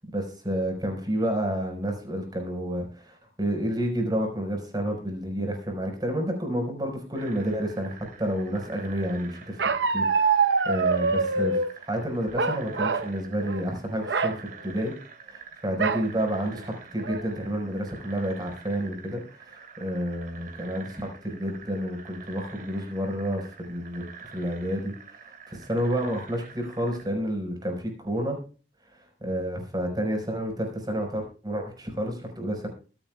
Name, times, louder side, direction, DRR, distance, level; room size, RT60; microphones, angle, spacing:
voice 1, 0.0-9.6 9.9-14.9 15.2-28.4 28.9-32.7, equal, 20° right, 2 dB, 4.9 m, -30 dB
sound 1, 7.1-27.1, right 6 dB, 50° right, 3.1 m, -47 dB
Bark, 9.6-11.7 12.4-13.1 13.4-13.7 14.0-14.4 15.8-16.1 16.6-16.7 17.0-17.5, right 4 dB, 70° right, 0.9 m, -24 dB
24.0 x 8.8 x 2.3 m, 0.36 s
head